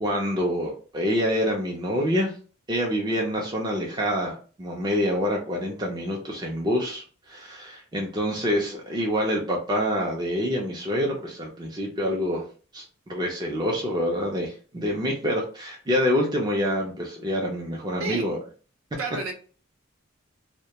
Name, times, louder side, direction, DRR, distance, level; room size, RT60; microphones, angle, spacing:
voice 1, 0.0-2.3 2.7-12.4 12.7-18.4, equal, 20° right, -1 dB, 0.4 m, -26 dB
voice 2, 19.0-19.3, right 3 dB, 75° right, 4 dB, 0.6 m, -30 dB
2.2 x 2.1 x 2.8 m, 0.39 s
head